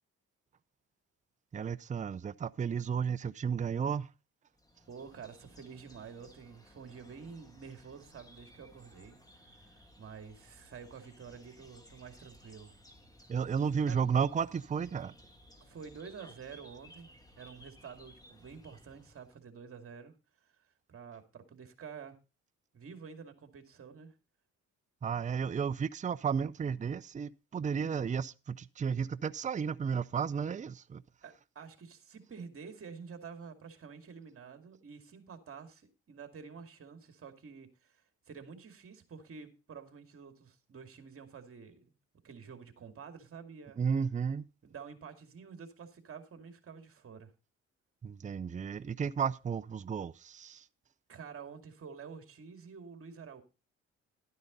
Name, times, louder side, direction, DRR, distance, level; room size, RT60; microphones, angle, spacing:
voice 1, 1.5-4.1 13.3-15.1 25.0-31.0 43.8-44.5 48.0-50.7, right 6 dB, 25° right, 0.5 m, -33 dB
sound 1, 4.5-19.4, equal, 10° left, 2.1 m, -59 dB
voice 2, 4.9-12.8 13.8-14.0 15.6-22.2 22.7-24.2 31.2-41.9 42.2-43.8 44.6-47.3 51.1-53.4, right 6 dB, 45° right, 2.3 m, -49 dB
12.5 x 9.4 x 3.9 m
cardioid pair, 90°, 30 cm